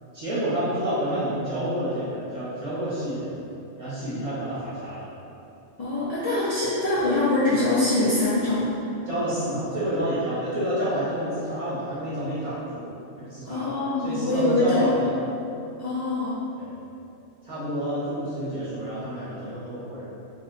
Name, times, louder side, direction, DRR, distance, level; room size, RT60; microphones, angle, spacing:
voice 1, 0.1-3.3 3.8-5.1 9.0-12.9 13.2-15.1 16.6-16.7 17.4-20.1, equal, 35° right, -12 dB, 0.7 m, -29 dB
voice 2, 5.8-8.8 13.5-14.9 15.8-16.4, left 2 dB, 50° left, -11 dB, 0.4 m, -24 dB
2.6 x 2.2 x 3.8 m, 2.8 s
omnidirectional pair, 1.3 m